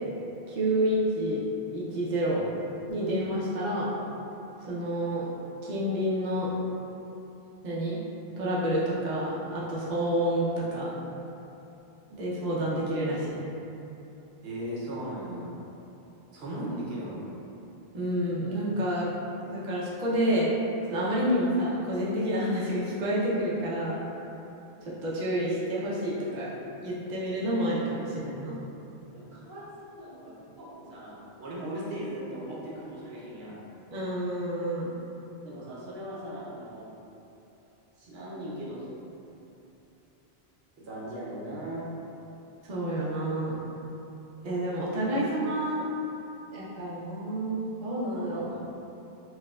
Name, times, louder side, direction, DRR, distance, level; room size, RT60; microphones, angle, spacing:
voice 1, 0.5-1.4 1.7-2.4 2.9-3.9 4.7-5.2 5.6-6.5 7.6-8.0 8.4-10.9 12.1-13.4 17.9-19.1 19.4-20.5 20.9-24.0 25.0-26.5 26.8-28.6 33.9-34.9 42.7-43.6 44.4-45.9 46.5-48.4, right 1 dB, 55° right, -7 dB, 0.7 m, -29 dB
voice 2, 14.4-15.6 16.3-17.2 29.1-33.6 35.4-36.9 38.0-38.9 40.8-41.9 48.3-48.6, right 1 dB, 75° right, -7 dB, 1.0 m, -38 dB
4.5 x 2.1 x 2.3 m, 2.9 s
omnidirectional pair, 1.1 m